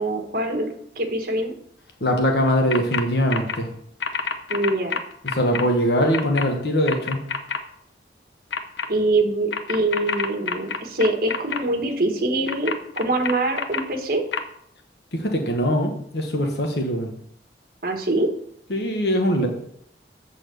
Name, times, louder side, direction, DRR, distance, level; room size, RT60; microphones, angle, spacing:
voice 1, 0.0-1.5 4.5-5.0 8.9-14.2 17.8-18.3, right 2 dB, 55° right, 3 dB, 1.4 m, -24 dB
voice 2, 2.0-3.7 5.3-7.2 15.1-17.1 18.7-19.5, equal, 70° left, 3 dB, 1.2 m, -22 dB
sound 1, 2.7-3.0 3.3-3.6 4.0-5.6 6.1-6.4 6.9-7.6 8.5-8.9 9.5-11.6 12.5-13.8 14.3-14.4, left 6 dB, 85° left, 0.8 m, -27 dB
8.1 x 4.2 x 6.8 m, 0.67 s
head